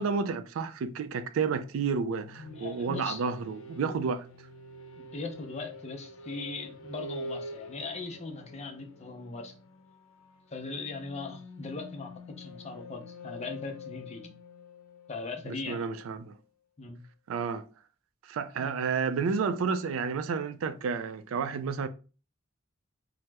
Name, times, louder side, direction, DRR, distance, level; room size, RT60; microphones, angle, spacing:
voice 1, 0.0-4.2 15.5-16.4 17.3-17.7 18.3-21.9, right 5 dB, 85° right, 0.3 m, -31 dB
sound 1, 1.5-16.1, left 1 dB, 85° left, 0.6 m, -46 dB
voice 2, 2.4-3.2 5.0-9.6 10.5-14.3 15.1-15.9 16.8-17.0 18.6-18.7, left 3 dB, 35° left, 0.5 m, -39 dB
2.9 x 2.0 x 3.3 m
head